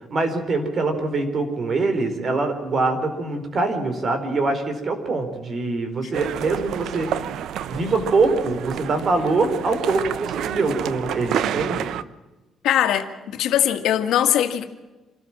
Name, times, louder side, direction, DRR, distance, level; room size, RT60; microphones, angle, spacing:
voice 1, 0.1-7.1 7.7-11.9, right 3 dB, 50° right, 4.5 m, -23 dB
sound 1, 6.1-12.0, right 10 dB, 80° right, 0.8 m, -29 dB
voice 2, 12.6-14.7, left 11 dB, 85° left, 1.9 m, -21 dB
27.5 x 13.5 x 7.5 m
cardioid pair, 90°, 0 cm